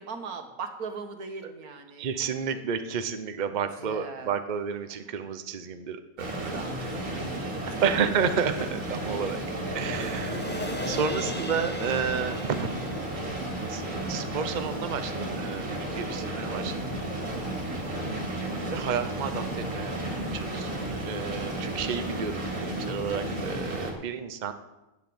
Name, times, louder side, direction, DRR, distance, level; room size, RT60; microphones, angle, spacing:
voice 1, 0.0-2.3 3.8-4.4 4.9-5.0 6.3-7.8 10.3-10.5 11.2-11.7 17.7-18.0, right 5 dB, 90° right, 6 dB, 1.8 m, -40 dB
voice 2, 2.0-6.6 7.8-9.4 9.7-10.4 10.7-12.7 13.7-17.0 18.7-19.9 20.3-24.5, right 6 dB, 40° right, 9 dB, 0.8 m, -31 dB
sound 1, 6.2-23.9, right 1 dB, 65° right, 2.7 m, -33 dB
sound 2, 9.4-16.0 16.4-16.5, left 1 dB, 15° left, 0.4 m, -40 dB
10.5 x 8.4 x 7.8 m, 0.99 s
omnidirectional pair, 1.5 m